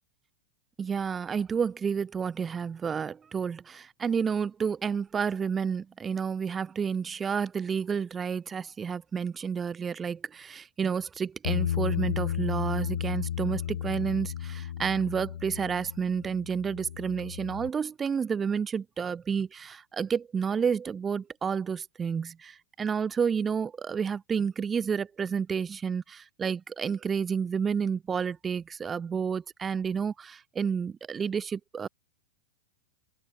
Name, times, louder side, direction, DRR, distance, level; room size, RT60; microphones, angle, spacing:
voice 1, 0.8-31.9, right 6 dB, 20° right, 0.6 m, -30 dB
Bass guitar, 11.4-17.7, left 10 dB, 85° left, 0.4 m, -33 dB
hypercardioid pair, 135°, 0 cm